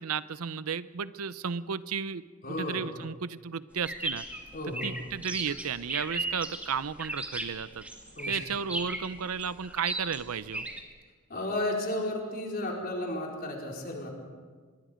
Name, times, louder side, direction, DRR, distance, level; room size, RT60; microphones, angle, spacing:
voice 1, 0.0-2.2 2.6-4.2 4.8-7.8 8.3-10.6, right 6 dB, 90° right, 15 dB, 0.6 m, -33 dB
voice 2, 2.4-2.9 4.5-5.0 8.2-8.4 11.3-14.1, left 1 dB, 45° left, -1 dB, 4.4 m, -33 dB
sound 1, 3.8-10.8, right 1 dB, 5° right, 2.1 m, -36 dB
25.5 x 22.0 x 5.1 m, 1.6 s
head